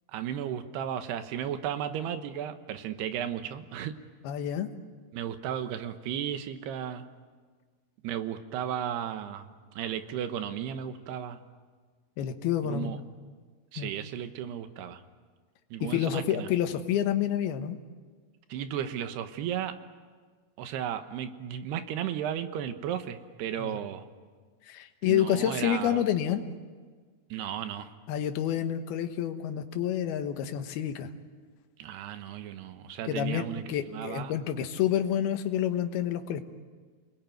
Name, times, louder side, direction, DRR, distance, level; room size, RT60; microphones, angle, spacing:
voice 1, 0.1-4.0 5.1-7.1 8.0-11.4 12.6-13.0 13.7-15.0 15.7-16.5 18.5-19.8 20.6-24.0 25.0-26.0 27.3-27.9 31.8-34.3, right 9 dB, 80° right, 9 dB, 3.3 m, -34 dB
voice 2, 4.2-4.7 12.2-13.0 13.8-13.9 15.8-17.8 23.6-23.8 24.7-26.4 28.1-31.1 33.1-36.4, left 10 dB, 75° left, 7 dB, 3.1 m, -28 dB
29.0 x 21.0 x 9.3 m, 1.5 s
omnidirectional pair, 4.7 m